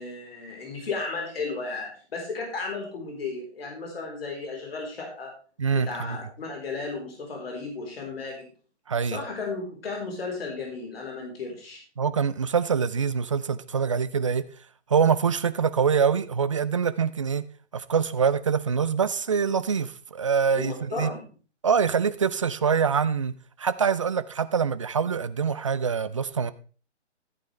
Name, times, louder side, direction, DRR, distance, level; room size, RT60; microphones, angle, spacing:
voice 1, 0.0-5.3 5.7-8.5 9.1-11.8 20.5-21.2, left 4 dB, 55° left, 3.9 m, -34 dB
voice 2, 5.6-6.2 8.9-9.2 12.0-14.5 14.9-17.5 17.7-21.1 21.6-23.3 23.6-26.5, right 6 dB, 30° right, 0.4 m, -24 dB
13.5 x 9.0 x 3.2 m
figure-of-eight pair, 140°, 35 cm